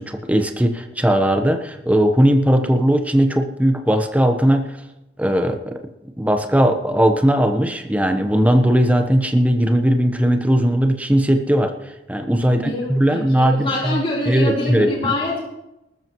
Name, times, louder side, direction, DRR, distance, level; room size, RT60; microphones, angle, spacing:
voice 1, 0.0-4.7 5.2-5.8 6.2-14.9, equal, 10° right, 6 dB, 1.1 m, -18 dB
voice 2, 12.5-15.4, left 1 dB, 30° left, -5 dB, 3.9 m, -25 dB
19.5 x 13.5 x 3.1 m, 0.92 s
head